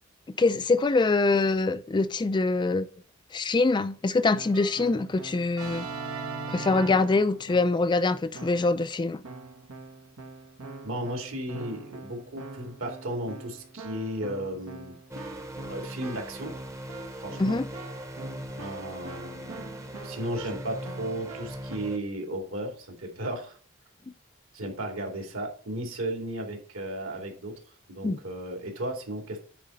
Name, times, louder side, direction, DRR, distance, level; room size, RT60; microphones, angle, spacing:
voice 1, 0.4-2.9 3.3-5.9 6.5-9.2 17.4-17.7 28.0-28.2, left 3 dB, 20° left, 0.3 m, -24 dB
Keyboard (musical), 4.2-7.9 8.3-8.8 9.2-21.8, right 3 dB, 90° right, 1.4 m, -42 dB
voice 2, 10.8-15.0 15.7-16.5 17.2-17.6 18.5-19.6 20.0-23.6 24.5-27.5 27.9-29.4, right 1 dB, 65° right, 2.4 m, -35 dB
sound 1, 15.1-22.0, right 1 dB, 15° right, 0.8 m, -40 dB
9.1 x 4.2 x 5.4 m
head